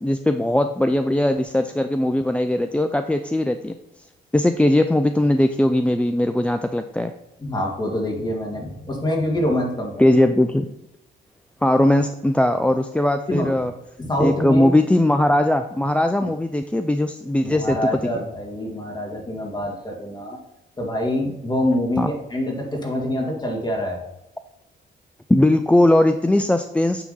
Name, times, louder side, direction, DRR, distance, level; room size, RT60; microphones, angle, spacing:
voice 1, 0.0-3.7 4.3-7.1 10.0-10.7 11.6-13.7 14.2-17.8 22.0-22.1 25.3-27.0, left 1 dB, 5° left, 7 dB, 0.4 m, -19 dB
voice 2, 7.4-9.9 13.3-13.5 14.0-14.7 17.4-20.4 20.8-24.0, left 1 dB, 20° left, -1 dB, 2.4 m, -25 dB
8.9 x 3.6 x 5.6 m, 0.87 s
cardioid pair, 90°, 20 cm